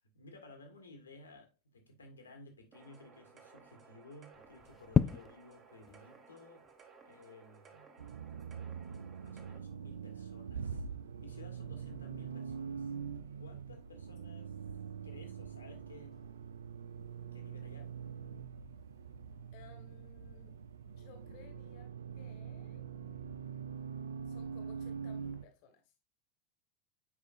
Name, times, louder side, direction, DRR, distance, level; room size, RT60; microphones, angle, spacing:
voice 1, 0.1-6.7 7.0-7.9 9.2-10.9 11.2-12.9 13.4-14.5 15.0-16.2 17.3-17.9, left 2 dB, 75° left, 1.6 m, -56 dB
sound 1, 2.7-9.6, right 5 dB, 30° right, 1.6 m, -59 dB
sound 2, 4.3-21.5, left 6 dB, 25° left, 0.4 m, -43 dB
Accelerating revving vroom, 8.0-25.4, right 6 dB, 70° right, 0.4 m, -44 dB
voice 2, 19.5-20.5 21.0-21.9 22.1-22.9 24.3-25.9, left 6 dB, 50° left, 1.4 m, -59 dB
8.1 x 5.0 x 2.6 m
figure-of-eight pair, 85°, 0 cm